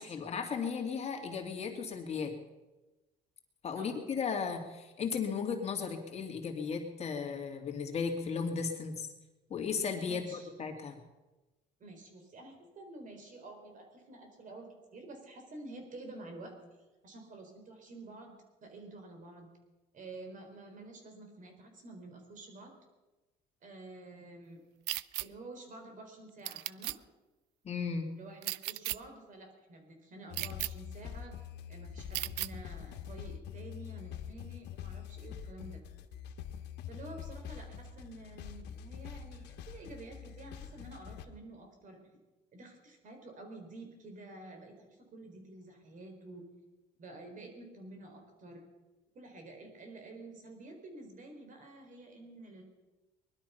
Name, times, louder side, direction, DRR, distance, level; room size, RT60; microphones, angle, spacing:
voice 1, 0.0-2.3 3.6-9.1 9.5-11.0 27.6-28.0, left 5 dB, 40° left, 3 dB, 2.5 m, -35 dB
voice 2, 10.0-10.5 11.8-16.6 17.0-18.3 18.6-19.5 19.9-22.7 23.6-24.6 25.2-26.9 28.1-31.3 31.7-35.8 36.9-42.0 42.5-46.5 47.0-48.7 49.1-52.6, right 2 dB, 50° right, 4 dB, 4.3 m, -49 dB
sound 1, 24.9-25.3 26.4-27.0 28.4-29.0 30.3-30.7 32.1-32.5, right 18 dB, 90° right, 0.5 m, -35 dB
sound 2, 30.3-41.3, left 9 dB, 85° left, 1.4 m, -45 dB
20.5 x 12.0 x 5.8 m, 1.1 s
cardioid pair, 110°, 17 cm